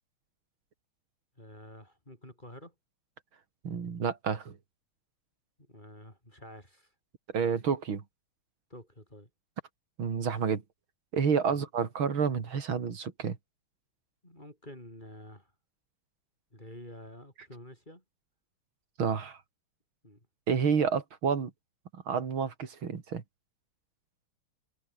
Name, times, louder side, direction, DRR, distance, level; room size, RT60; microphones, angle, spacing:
voice 1, 1.4-2.7 5.6-6.9 8.7-9.3 11.5-11.7 14.2-15.5 16.5-18.0 20.0-20.3, left 1 dB, 20° left, 8.1 m, -49 dB
voice 2, 3.6-4.6 7.3-8.0 10.0-10.6 11.1-13.4 19.0-19.4 20.5-21.5 22.1-23.2, right 6 dB, 80° right, 3.3 m, -29 dB
omnidirectional pair, 2.2 m